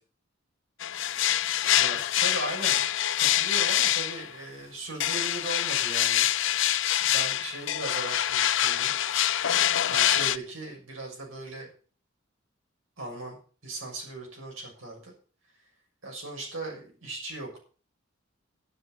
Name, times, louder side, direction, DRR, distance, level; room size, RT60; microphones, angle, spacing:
sound 1, 0.8-4.4 5.0-10.4, left 12 dB, 65° left, 0.6 m, -25 dB
voice 1, 1.7-2.9 3.1-6.6 7.0-9.0 9.8-11.7 13.0-13.4 13.6-15.1 16.0-17.6, right 2 dB, 70° right, 0 dB, 6.9 m, -38 dB
11.5 x 10.0 x 6.5 m, 0.40 s
head